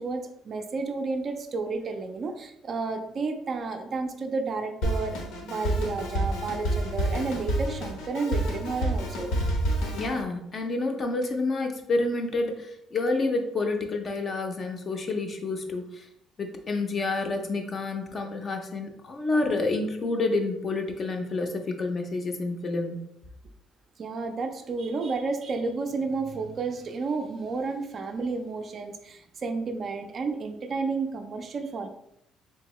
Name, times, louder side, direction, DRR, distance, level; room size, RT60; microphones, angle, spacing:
voice 1, 0.0-9.3 24.0-31.9, right 4 dB, 30° right, 6 dB, 0.3 m, -31 dB
Drum kit, 4.8-10.2, right 1 dB, 75° left, 0.8 m, -29 dB
voice 2, 9.9-16.1 16.4-23.0, left 3 dB, 30° left, 5 dB, 0.5 m, -29 dB
3.6 x 3.5 x 3.0 m, 0.78 s
cardioid pair, 175°, 0 cm